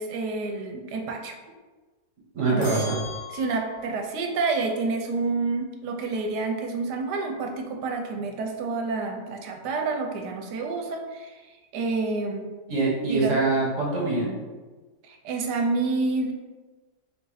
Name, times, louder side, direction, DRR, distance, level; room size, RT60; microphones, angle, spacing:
voice 1, 0.0-1.3 2.4-2.8 3.3-11.4 11.7-12.5 13.1-13.4 15.0-16.3, right 3 dB, 85° right, 3 dB, 1.2 m, -28 dB
voice 2, 2.3-3.0 12.7-14.3, right 3 dB, 55° right, -3 dB, 1.4 m, -24 dB
sound 1, 2.6-4.0, left 2 dB, 30° left, 0.7 m, -39 dB
4.4 x 2.6 x 3.9 m, 1.3 s
omnidirectional pair, 1.8 m